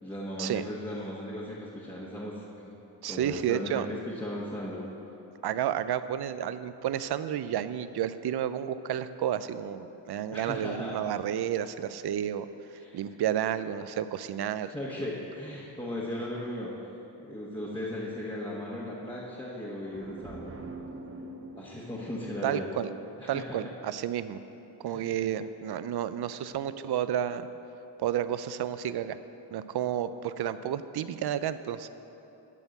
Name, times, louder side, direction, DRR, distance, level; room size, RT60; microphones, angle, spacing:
voice 1, 0.0-2.7 3.1-4.9 10.3-11.0 12.8-13.0 14.6-16.7 17.2-20.6 21.5-22.7 23.2-23.7 24.8-25.1, left 1 dB, 10° left, -7 dB, 1.4 m, -37 dB
voice 2, 3.0-3.9 5.4-12.5 12.9-14.7 22.4-22.9 23.3-24.4 24.8-27.5 28.0-29.2 29.5-31.9, right 10 dB, 60° right, 13 dB, 0.5 m, -31 dB
sound 1, 19.9-23.6, right 2 dB, 30° right, 0.8 m, -45 dB
10.5 x 4.5 x 8.0 m, 3.0 s
cardioid pair, 80°, 45 cm